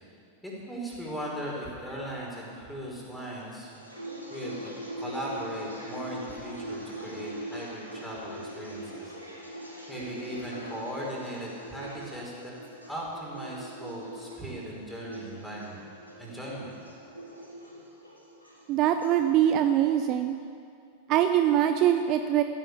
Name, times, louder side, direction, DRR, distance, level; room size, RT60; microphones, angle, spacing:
voice 1, 0.4-3.7 4.3-9.1 9.9-12.5 12.9-15.8 16.2-16.7, right 1 dB, 5° left, -5 dB, 5.1 m, -38 dB
sound 1, 3.5-19.2, right 1 dB, 85° left, 3.8 m, -42 dB
voice 2, 18.7-20.4 21.1-22.4, right 11 dB, 40° right, 8 dB, 0.6 m, -23 dB
15.0 x 11.0 x 8.4 m, 2.4 s
figure-of-eight pair, 90°, 0 cm